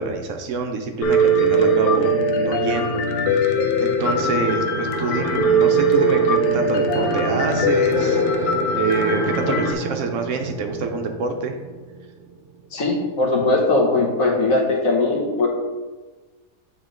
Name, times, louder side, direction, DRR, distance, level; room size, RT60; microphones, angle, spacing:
voice 1, 0.0-3.0 3.3-3.5 3.8-11.6, right 4 dB, 65° right, 5 dB, 0.9 m, -26 dB
Piano, 1.0-9.7, right 1 dB, 85° left, 1.1 m, -20 dB
sound 1, 4.0-12.8, right 5 dB, 80° right, 0.5 m, -30 dB
voice 2, 12.7-15.5, left 2 dB, 65° left, 0 dB, 1.4 m, -20 dB
8.4 x 3.6 x 3.6 m, 1.3 s
omnidirectional pair, 1.6 m